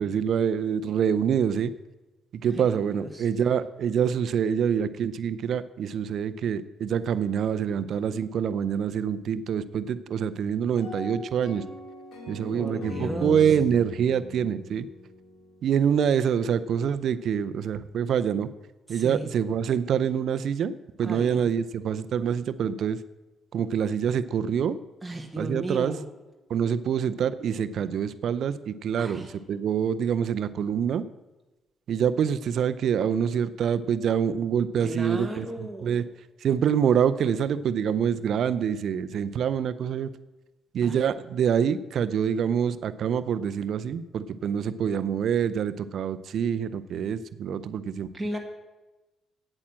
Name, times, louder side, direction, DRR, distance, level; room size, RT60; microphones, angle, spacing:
voice 1, 0.0-1.7 2.4-11.6 12.3-14.9 15.6-18.5 18.9-20.7 21.0-23.0 23.5-24.8 25.4-25.9 26.5-31.0 31.9-36.0 36.4-40.1 40.7-48.1, right 8 dB, 65° right, 13 dB, 0.5 m, -26 dB
voice 2, 2.5-3.3 12.3-13.6 18.9-19.3 21.0-21.5 25.0-26.1 29.0-29.3 34.8-36.1 40.8-41.0 48.1-48.4, right 1 dB, 10° right, 1 dB, 1.3 m, -36 dB
sound 1, 10.8-15.9, left 2 dB, 80° left, 3.6 m, -40 dB
8.8 x 8.7 x 7.4 m, 1.1 s
cardioid pair, 90°, 0 cm